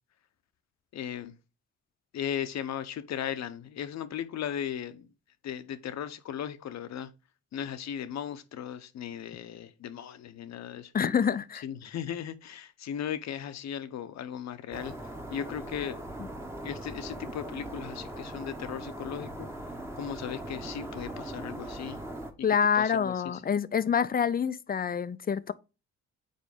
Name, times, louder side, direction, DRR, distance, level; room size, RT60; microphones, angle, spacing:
voice 1, 0.9-1.3 2.1-5.1 5.4-7.1 7.5-10.9 11.6-14.9 15.3-16.0 16.6-19.5 20.0-22.0 22.7-23.4, left 9 dB, 65° left, 0.9 m, -37 dB
voice 2, 10.9-11.6 22.4-25.5, left 7 dB, 30° left, 0.5 m, -27 dB
sound 1, 14.7-22.3, right 1 dB, 10° right, 1.1 m, -40 dB
5.3 x 4.5 x 5.1 m
cardioid pair, 90°, 29 cm